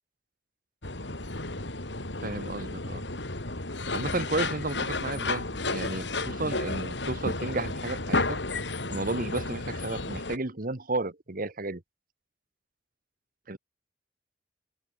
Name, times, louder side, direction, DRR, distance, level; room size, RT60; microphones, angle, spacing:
sound 1, 0.8-10.4, left 2 dB, 75° left, 4.0 m, -32 dB
voice 1, 2.2-3.0 3.9-8.4 8.9-11.8 13.5-13.6, right 2 dB, 50° right, 1.6 m, -33 dB
open air
head